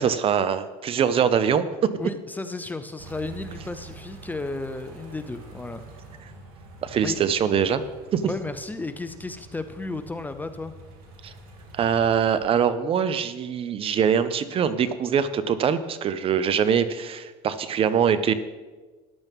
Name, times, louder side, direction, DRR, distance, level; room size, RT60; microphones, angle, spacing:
voice 1, 0.0-1.9 6.8-7.8 8.1-8.2 11.2-11.3 11.7-18.3, right 7 dB, 35° right, 13 dB, 0.7 m, -23 dB
voice 2, 2.0-5.8 7.0-7.2 8.2-10.7, left 3 dB, 10° left, 9 dB, 0.5 m, -33 dB
sound 1, 3.0-12.4, right 3 dB, 70° right, 2.9 m, -46 dB
14.0 x 10.5 x 3.6 m, 1.3 s
cardioid pair, 130°, 16 cm